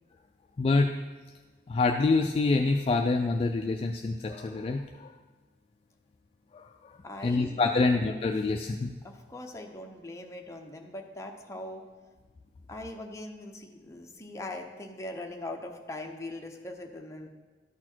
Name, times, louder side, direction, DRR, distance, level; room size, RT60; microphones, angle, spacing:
voice 1, 0.6-0.9 1.7-5.1 6.5-6.7 7.2-8.9, left 3 dB, 35° left, 4 dB, 0.3 m, -26 dB
voice 2, 7.0-7.9 9.0-11.8 12.7-17.3, left 1 dB, 15° left, 2 dB, 0.7 m, -41 dB
12.5 x 4.2 x 4.5 m, 1.3 s
head